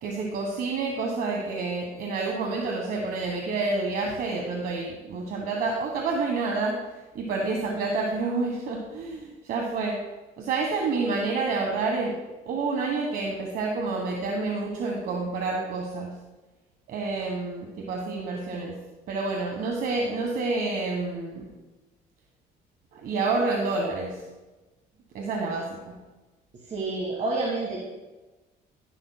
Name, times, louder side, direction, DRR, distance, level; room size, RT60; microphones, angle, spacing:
voice 1, 0.0-6.8 7.1-10.0 10.4-12.1 12.5-16.1 16.9-18.8 19.1-21.4 22.9-24.2 25.1-26.0, right 3 dB, 65° right, 0 dB, 1.3 m, -28 dB
voice 2, 26.7-27.8, right 2 dB, 45° right, 0 dB, 1.6 m, -28 dB
11.5 x 10.5 x 2.2 m, 1.1 s
cardioid pair, 110°, 17 cm